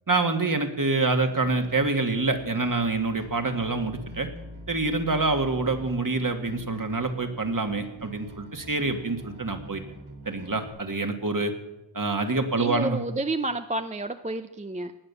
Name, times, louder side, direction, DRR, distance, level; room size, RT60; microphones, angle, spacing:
voice 1, 0.1-4.3 4.7-9.8 10.3-11.5 11.9-13.0, right 3 dB, 40° right, 5 dB, 2.0 m, -26 dB
Bass guitar, 1.1-10.7, right 1 dB, 85° right, 4.0 m, -45 dB
voice 2, 12.6-14.9, right 2 dB, 15° right, 9 dB, 0.6 m, -30 dB
19.0 x 6.8 x 7.0 m, 1.0 s
cardioid pair, 40°, 47 cm